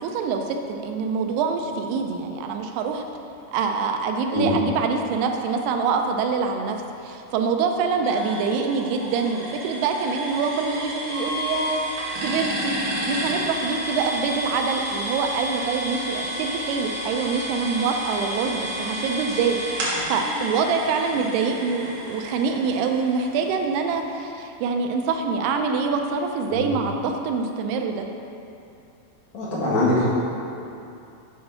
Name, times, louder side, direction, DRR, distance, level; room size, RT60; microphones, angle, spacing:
voice 1, 0.0-3.0 3.5-6.8 7.0-11.8 12.2-19.6 20.1-28.1, right 5 dB, 90° right, 4 dB, 2.6 m, -25 dB
sound 1, 8.0-23.7, equal, 60° right, 1.6 m, -31 dB
voice 2, 29.3-30.0, left 1 dB, 40° left, -9 dB, 2.2 m, -22 dB
8.6 x 4.3 x 5.7 m, 2.7 s
omnidirectional pair, 4.5 m